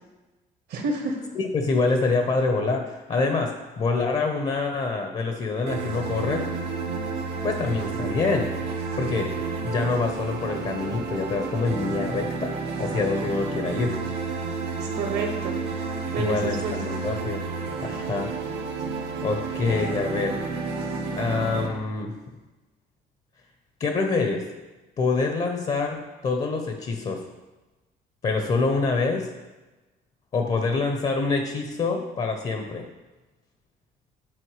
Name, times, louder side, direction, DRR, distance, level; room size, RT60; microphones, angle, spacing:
voice 1, 0.7-1.2 14.8-15.6 16.1-17.0, right 3 dB, 75° right, 1 dB, 1.6 m, -29 dB
voice 2, 1.3-6.5 7.4-8.5 9.0-9.3 9.6-12.5 12.8-13.9 16.2-17.4 17.8-18.3 19.2-20.4 21.2-22.1 23.8-24.4 25.0-27.2 28.2-29.3 30.3-32.8, left 4 dB, 40° left, 4 dB, 0.8 m, -26 dB
sound 1, 5.7-21.7, right 4 dB, 90° right, 1.4 m, -31 dB
11.0 x 4.3 x 3.2 m, 1.2 s
cardioid pair, 110°, 17 cm